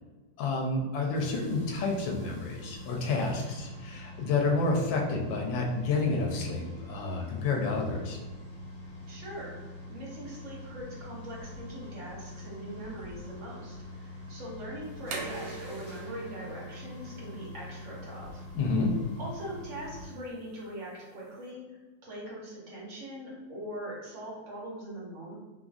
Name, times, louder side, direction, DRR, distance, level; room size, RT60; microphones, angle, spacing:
voice 1, 0.4-8.2 18.5-18.9, left 3 dB, 85° left, 0 dB, 1.3 m, -29 dB
sound 1, 1.1-20.1, left 1 dB, 50° left, 1.0 m, -44 dB
voice 2, 9.1-9.6 9.9-18.4 19.2-21.6 22.0-25.3, equal, 50° right, -5 dB, 1.0 m, -42 dB
sound 2, 14.8-21.5, right 3 dB, 75° right, 1.2 m, -45 dB
3.1 x 2.4 x 2.3 m, 1.2 s
omnidirectional pair, 2.0 m